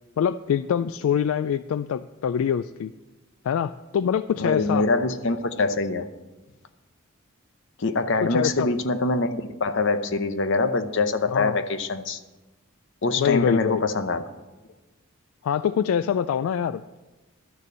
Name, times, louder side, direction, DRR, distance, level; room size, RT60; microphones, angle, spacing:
voice 1, 0.2-2.9 3.4-4.9 8.2-8.7 11.3-11.6 13.2-13.8 15.4-16.8, left 8 dB, 80° left, 14 dB, 0.3 m, -25 dB
voice 2, 4.4-6.1 7.8-12.2 13.0-14.2, left 3 dB, 65° left, 11 dB, 0.8 m, -24 dB
12.0 x 6.7 x 7.3 m, 1.1 s
head